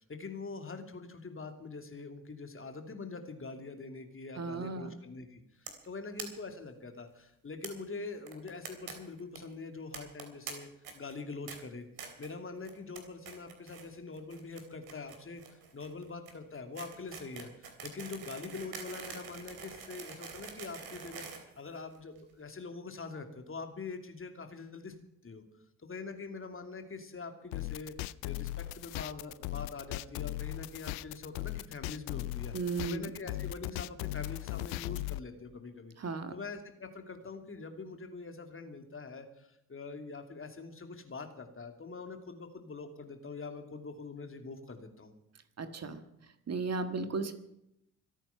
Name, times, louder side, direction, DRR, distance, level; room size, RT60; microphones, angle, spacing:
voice 1, 0.0-10.7 10.9-11.9 12.2-25.0 25.2-25.4 25.8-32.5 32.8-35.9 36.3-45.1, left 4 dB, 30° left, 6 dB, 2.7 m, -44 dB
voice 2, 4.4-4.9 32.5-33.1 36.0-36.3 45.6-46.0 46.5-47.3, right 4 dB, 35° right, 9 dB, 1.7 m, -35 dB
sound 1, 5.7-5.9 6.2-6.3 6.5-6.6 6.8-6.9 7.6-7.7 8.3-8.9 9.2-9.4 9.9-10.5 10.8-11.1 11.5-11.6 12.0-12.3 12.6-13.0 13.2-13.9 14.1-22.2, right 6 dB, 60° right, 3.3 m, -45 dB
sound 2, 27.5-35.2, left 17 dB, 70° left, 0.6 m, -38 dB
25.0 x 9.0 x 5.8 m, 0.80 s
figure-of-eight pair, 45°, 42 cm